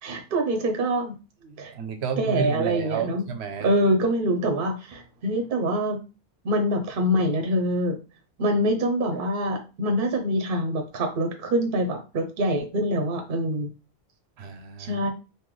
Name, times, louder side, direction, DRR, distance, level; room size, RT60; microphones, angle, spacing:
voice 1, 0.0-1.1 1.6-1.7 2.2-3.2 3.6-6.0 6.4-8.0 8.4-13.7 14.8-15.1, equal, 55° right, 3 dB, 0.9 m, -25 dB
voice 2, 1.4-3.7 14.4-15.0, right 7 dB, 80° right, 7 dB, 0.9 m, -31 dB
3.8 x 2.9 x 3.1 m, 0.31 s
omnidirectional pair, 1.1 m